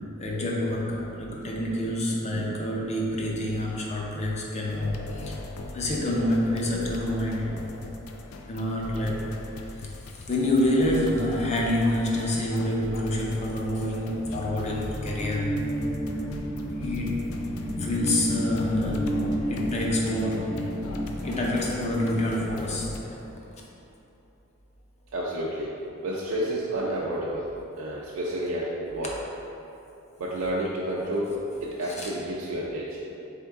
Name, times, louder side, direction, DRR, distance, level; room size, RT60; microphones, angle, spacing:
voice 1, 0.2-5.4 5.7-7.6 8.5-9.2 10.3-15.5 16.8-17.3 17.8-19.2 19.5-20.6 21.2-22.9 32.0-32.1, left 1 dB, 30° left, -2 dB, 0.6 m, -27 dB
voice 2, 2.3-2.9 25.1-25.7 26.0-27.5 27.8-29.1 30.2-31.3 31.6-33.0, right 1 dB, 65° right, -5 dB, 0.4 m, -30 dB
sound 1, 4.7-23.0, left 3 dB, 85° left, 0.4 m, -39 dB
sound 2, 14.2-23.1, equal, 15° right, 0.5 m, -31 dB
3.6 x 3.6 x 3.5 m, 2.9 s
head